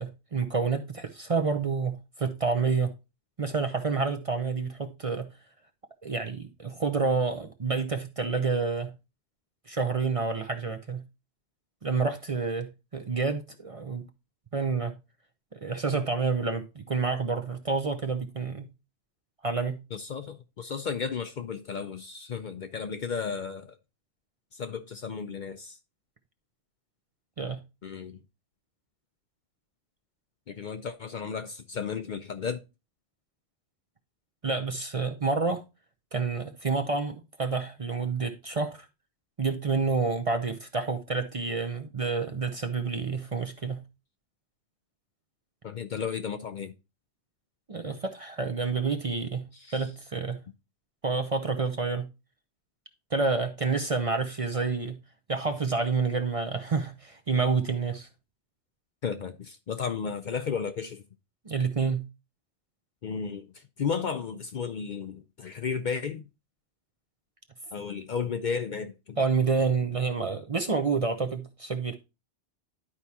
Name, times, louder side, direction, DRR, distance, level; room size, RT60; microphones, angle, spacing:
voice 1, 0.0-2.9 3.4-5.3 6.0-8.9 9.7-11.0 11.8-14.1 14.5-15.0 15.5-18.7 19.4-19.8 27.4-27.6 34.4-35.6 36.1-38.9 39.4-43.8 47.7-49.5 49.7-50.4 51.0-52.1 53.1-55.0 55.3-58.1 61.5-62.1 69.2-71.9, right 4 dB, 40° right, 0.6 m, -28 dB
voice 2, 19.9-23.8 24.5-25.8 27.8-28.2 30.5-32.6 45.6-46.7 49.5-49.9 59.0-61.0 63.0-66.3 67.7-69.2, left 6 dB, 55° left, 0.6 m, -34 dB
11.0 x 4.7 x 2.8 m
omnidirectional pair, 1.1 m